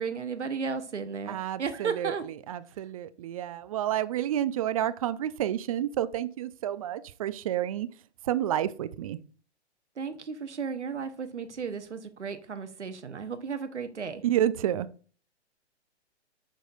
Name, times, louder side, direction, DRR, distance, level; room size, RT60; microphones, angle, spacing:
voice 1, 0.0-2.2 10.0-14.2, right 5 dB, 85° right, 0.9 m, -34 dB
voice 2, 1.3-7.9 8.2-9.2 14.2-14.9, right 11 dB, 30° right, 0.4 m, -30 dB
8.9 x 6.4 x 2.5 m
figure-of-eight pair, 120°, 34 cm